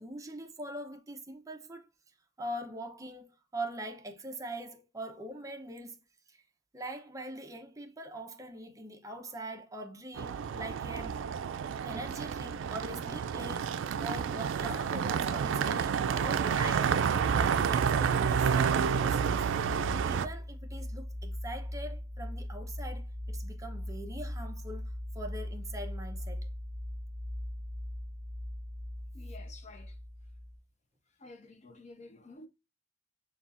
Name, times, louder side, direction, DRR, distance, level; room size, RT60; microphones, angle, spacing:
voice 1, 0.0-1.9 2.4-6.0 6.3-6.4 6.7-11.2 11.8-19.8 20.0-26.5, right 1 dB, 20° right, 0.6 m, -43 dB
sound 1, 10.2-20.3, right 7 dB, 90° right, 0.3 m, -29 dB
sound 2, 16.5-30.6, left 1 dB, 40° right, 0.9 m, -40 dB
voice 2, 29.1-30.0 31.2-32.5, left 3 dB, 40° left, 0.5 m, -51 dB
6.9 x 2.3 x 2.4 m
head